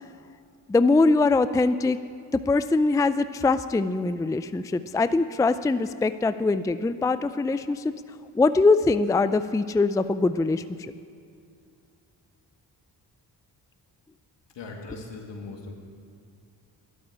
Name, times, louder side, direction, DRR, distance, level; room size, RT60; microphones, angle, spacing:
voice 1, 0.7-2.0 2.3-7.8 8.3-10.9, left 3 dB, 10° left, 13 dB, 0.4 m, -22 dB
voice 2, 14.5-15.7, left 3 dB, 75° left, 1 dB, 2.3 m, -39 dB
11.5 x 8.7 x 9.9 m, 2.4 s
cardioid pair, 60°, 44 cm